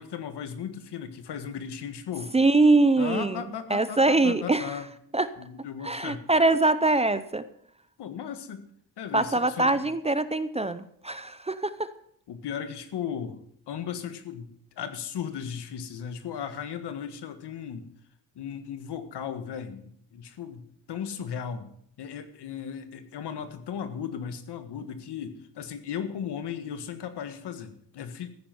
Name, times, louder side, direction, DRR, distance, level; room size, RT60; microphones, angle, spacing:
voice 1, 0.0-2.3 3.0-4.9 5.4-6.2 8.0-8.6 9.0-9.9 12.3-13.4 13.7-17.9 18.4-20.6 20.9-21.7 22.0-28.3, left 8 dB, 75° left, 10 dB, 1.7 m, -36 dB
voice 2, 2.3-3.4 3.7-4.7 5.1-5.3 5.8-7.4 9.1-11.9, right 2 dB, 15° right, 13 dB, 0.5 m, -23 dB
14.5 x 10.0 x 7.7 m, 0.68 s
wide cardioid pair, 150°, 41 cm